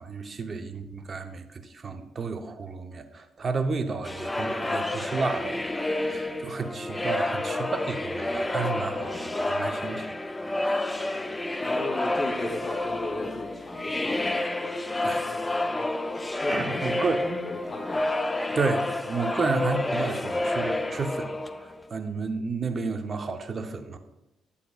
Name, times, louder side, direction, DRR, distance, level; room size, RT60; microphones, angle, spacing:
voice 1, 0.0-10.1 10.4-10.7 15.0-15.3 16.5-17.3 18.5-21.3 21.6-24.0, right 4 dB, 35° right, 6 dB, 0.7 m, -32 dB
sound 1, 4.0-21.9, left 2 dB, 10° left, 0.4 m, -29 dB
voice 2, 11.6-14.5 15.2-15.9 16.4-18.0, left 2 dB, 30° left, 1 dB, 0.8 m, -36 dB
10.0 x 8.3 x 2.3 m, 0.94 s
cardioid pair, 105°, 0 cm